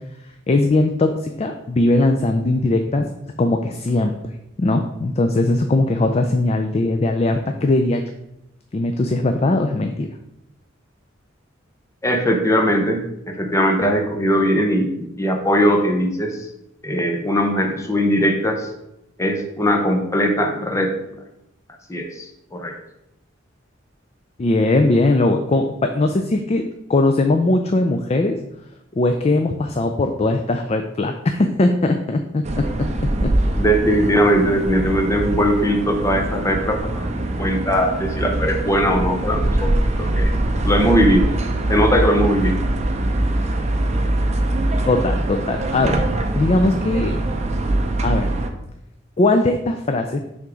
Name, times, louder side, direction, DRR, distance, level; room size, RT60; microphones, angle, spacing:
voice 1, 0.5-3.1 3.4-4.1 4.6-8.0 8.7-10.1 24.4-26.6 26.9-28.3 29.0-32.9 33.2-33.3 44.9-46.0 46.4-47.2 48.0-48.3 49.2-50.2, left 2 dB, 30° left, 5 dB, 0.4 m, -19 dB
voice 2, 12.0-13.0 13.3-16.4 16.8-18.7 19.2-20.9 21.9-22.7 33.6-39.7 40.0-40.3 40.6-41.3 41.7-42.6, equal, 15° left, 3 dB, 0.7 m, -19 dB
sound 1, 32.4-48.5, right 1 dB, 35° right, 0.6 m, -22 dB
6.7 x 3.6 x 4.9 m, 0.84 s
head